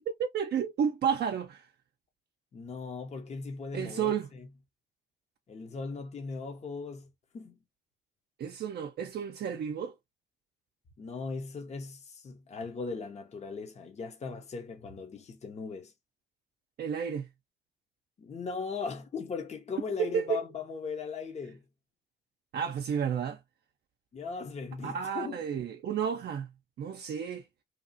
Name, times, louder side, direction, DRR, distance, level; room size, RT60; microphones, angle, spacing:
voice 1, 0.2-1.7 3.7-4.3 8.4-9.9 16.8-17.3 20.0-20.4 22.5-23.4 24.8-26.5 26.8-27.4, right 8 dB, 55° right, 0.5 m, -31 dB
voice 2, 2.5-4.5 5.5-7.6 11.0-15.9 18.2-21.6 24.1-25.4, left 4 dB, 35° left, 0.7 m, -38 dB
2.8 x 2.3 x 2.6 m
cardioid pair, 90°, 20 cm